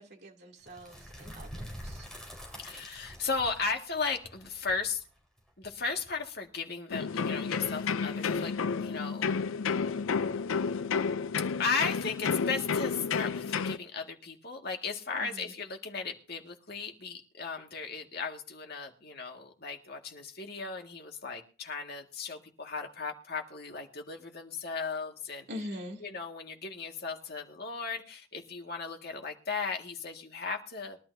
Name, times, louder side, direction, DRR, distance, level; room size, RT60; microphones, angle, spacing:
voice 1, 0.0-2.1 15.2-15.5 25.5-26.0, left 1 dB, 50° right, 2.7 m, -43 dB
sound 1, 0.6-6.5, equal, 5° left, 4.5 m, -46 dB
voice 2, 2.6-5.0 5.6-8.5 8.8-9.3 11.6-25.5 26.0-31.0, left 5 dB, 50° left, 1.9 m, -36 dB
sound 2, 6.9-13.8, left 5 dB, 85° left, 0.5 m, -31 dB
22.0 x 12.0 x 2.7 m
head